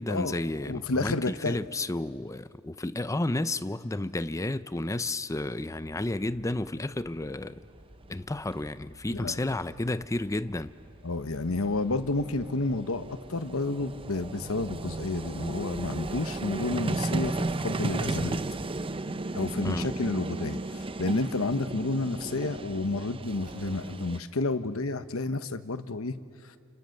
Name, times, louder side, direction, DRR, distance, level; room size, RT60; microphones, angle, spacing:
voice 1, 0.0-7.6 8.1-10.7 17.3-17.4 19.6-19.9, left 2 dB, 15° left, 0.6 m, -32 dB
voice 2, 0.6-1.6 9.1-9.4 11.0-18.4 19.3-26.2, left 2 dB, 75° left, 1.1 m, -30 dB
sound 1, 5.6-17.7, equal, 60° right, 3.1 m, -55 dB
Vehicle, 8.1-8.2 8.4-8.5 10.5-10.6 10.8-24.2, right 2 dB, 25° right, 0.6 m, -34 dB
Car, 20.7-21.1 23.2-24.1, right 1 dB, 40° right, 7.6 m, -57 dB
29.5 x 28.5 x 6.6 m
head